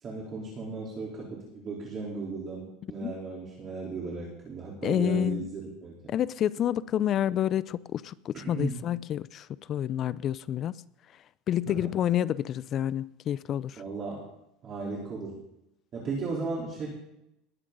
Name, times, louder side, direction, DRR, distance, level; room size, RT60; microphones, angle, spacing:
voice 1, 0.0-6.1 8.3-8.8 11.7-11.9 13.8-14.2 14.6-15.4 15.9-16.9, right 4 dB, 35° right, 3.6 m, -36 dB
voice 2, 4.8-5.5 6.1-10.8 11.5-13.8, left 10 dB, 40° left, 0.4 m, -29 dB
19.5 x 8.9 x 3.9 m
supercardioid pair, 130°, 0 cm